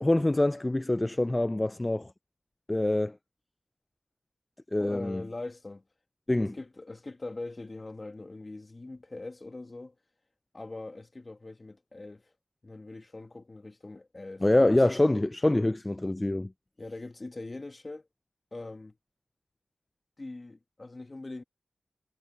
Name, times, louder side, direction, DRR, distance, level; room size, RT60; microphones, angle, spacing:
voice 1, 0.0-2.1 2.7-3.2 4.7-5.2 6.3-6.6 14.4-16.5, left 1 dB, 25° left, 0.5 m, -25 dB
voice 2, 4.8-5.8 6.4-10.0 10.5-12.3 12.6-14.8 16.8-18.1 18.5-19.0 20.2-21.4, left 2 dB, 40° left, 2.3 m, -42 dB
cardioid pair, 55°, 0 cm